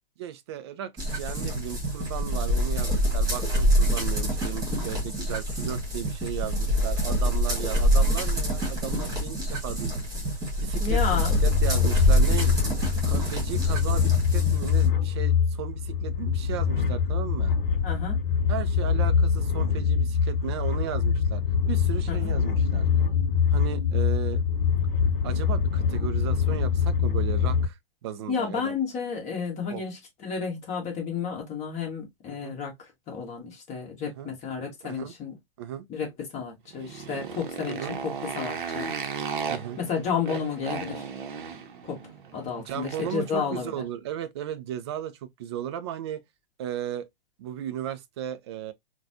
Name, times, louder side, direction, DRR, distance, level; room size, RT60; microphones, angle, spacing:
voice 1, 0.2-10.1 10.6-12.5 13.0-17.5 18.5-22.9 23.5-24.4 25.2-28.7 29.7-29.8 32.4-32.6 34.0-34.3 34.8-35.1 35.6-35.9 37.7-38.0 39.5-39.8 42.5-46.2 46.6-47.1 47.4-48.7, right 10 dB, 30° right, 0.4 m, -35 dB
sound 1, 1.0-14.9, equal, 10° right, 1.5 m, -26 dB
voice 2, 10.8-11.4 17.8-18.2 22.1-22.3 28.3-35.3 35.9-38.9 39.8-41.0 41.8-42.0 42.3-43.8, left 6 dB, 25° left, 1.4 m, -32 dB
sound 2, 10.9-27.7, left 6 dB, 60° left, 0.6 m, -24 dB
Motorcycle, 36.7-43.3, right 6 dB, 55° right, 0.7 m, -35 dB
3.9 x 2.2 x 2.7 m
figure-of-eight pair, 115°, 29 cm